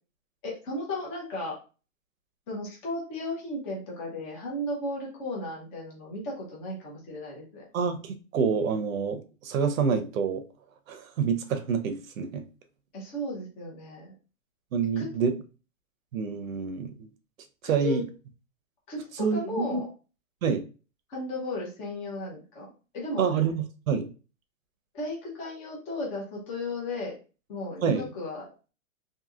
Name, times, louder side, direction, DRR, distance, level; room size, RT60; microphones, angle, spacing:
voice 1, 0.4-1.6 2.5-7.6 12.9-14.1 15.0-15.1 17.6-18.0 18.9-19.9 21.1-22.7 22.9-23.2 24.9-27.2 27.5-28.5, left 1 dB, 15° left, -3 dB, 0.6 m, -35 dB
voice 2, 7.7-10.4 10.9-12.4 14.7-15.3 16.1-17.1 17.6-18.0 19.2-19.8 20.4-20.6 23.2-24.1 27.8-28.0, right 6 dB, 80° right, 9 dB, 0.7 m, -27 dB
2.7 x 2.7 x 2.4 m, 0.34 s
hypercardioid pair, 160°, 40 cm